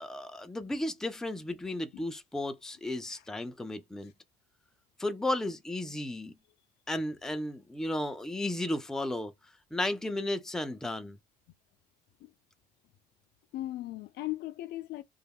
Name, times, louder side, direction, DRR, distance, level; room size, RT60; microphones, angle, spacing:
voice 1, 0.0-4.1 5.0-6.3 6.9-9.3 9.7-11.2, left 1 dB, 5° left, 0.3 m, -34 dB
voice 2, 13.5-15.0, left 16 dB, 75° left, 0.4 m, -38 dB
2.3 x 2.1 x 3.4 m
cardioid pair, 110°, 17 cm